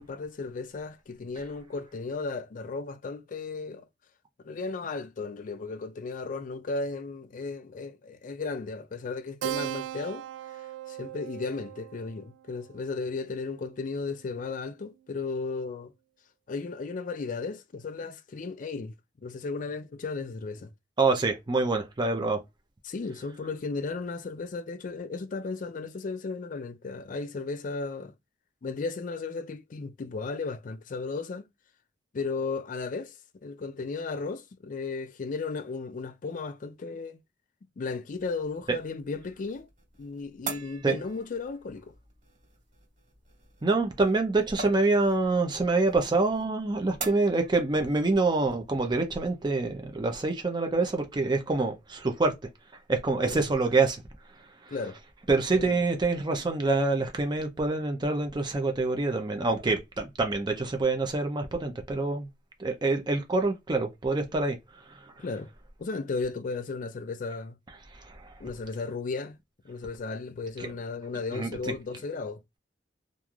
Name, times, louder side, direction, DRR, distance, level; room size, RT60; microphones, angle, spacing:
voice 1, 0.0-3.9 4.4-10.6 10.9-15.9 16.5-18.9 19.2-20.7 22.8-28.1 28.6-31.5 32.1-37.2 37.8-39.7 40.0-41.9 53.2-53.5 54.7-55.0 55.5-55.8 65.2-65.5 65.8-67.6 68.4-69.4 69.6-72.4, left 4 dB, 50° left, 0.4 m, -35 dB
Keyboard (musical), 9.4-14.4, right 13 dB, 85° right, 0.3 m, -39 dB
voice 2, 21.0-22.4 40.8-41.0 43.6-52.3 52.9-54.0 54.6-54.7 55.3-62.3 62.6-64.6 64.9-65.1 67.9-68.3 70.6-70.7 71.3-71.5, right 3 dB, 25° right, 0.5 m, -26 dB
sound 1, 38.1-48.9, right 4 dB, 45° right, 1.9 m, -45 dB
3.1 x 2.5 x 2.4 m
head